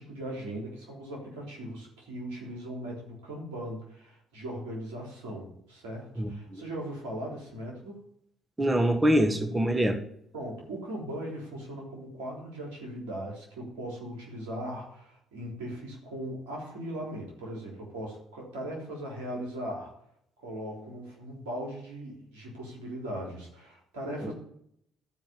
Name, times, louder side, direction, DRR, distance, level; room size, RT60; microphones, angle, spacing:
voice 1, 0.0-8.0 10.3-19.9 20.4-24.3, right 1 dB, 85° right, -1 dB, 3.7 m, -39 dB
voice 2, 6.2-6.6 8.6-10.0 24.2-24.3, equal, 20° right, 5 dB, 1.8 m, -25 dB
12.5 x 5.1 x 7.0 m, 0.71 s
hypercardioid pair, 60°, 0 cm